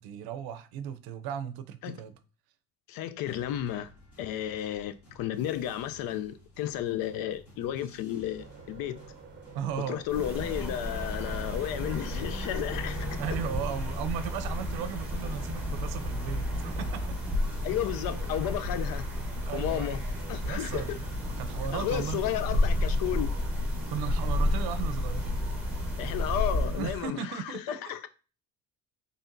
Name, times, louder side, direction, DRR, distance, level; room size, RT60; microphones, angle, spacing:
voice 1, 0.0-2.1 9.5-10.0 13.2-17.0 19.4-19.9 20.3-21.0 21.4-22.3 23.7-25.3 26.7-27.8, right 8 dB, 80° right, 0.6 m, -36 dB
voice 2, 2.9-3.9 4.2-9.0 9.9-13.2 17.6-19.1 19.5-20.0 20.3-21.0 21.7-23.3 26.0-28.1, left 11 dB, 65° left, 0.5 m, -33 dB
sound 1, 3.3-22.6, left 1 dB, 45° left, 2.3 m, -54 dB
sound 2, 8.4-13.6, right 5 dB, 30° right, 0.6 m, -48 dB
sound 3, 10.1-27.0, left 1 dB, 5° right, 1.0 m, -31 dB
4.4 x 3.3 x 2.6 m
cardioid pair, 140°, 37 cm